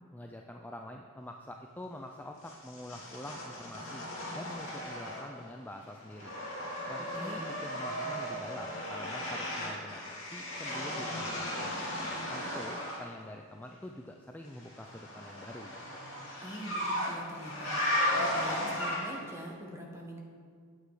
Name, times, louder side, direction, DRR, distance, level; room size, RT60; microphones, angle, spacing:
voice 1, 0.1-6.3 6.9-11.8 12.3-15.7, left 1 dB, 10° left, 2 dB, 0.4 m, -46 dB
sound 1, 2.4-5.5 5.8-13.1 14.6-19.3, left 1 dB, 65° left, 2.6 m, -36 dB
voice 2, 7.0-7.5 16.4-20.2, right 1 dB, 15° right, 0 dB, 1.4 m, -44 dB
9.5 x 8.3 x 4.8 m, 2.1 s
head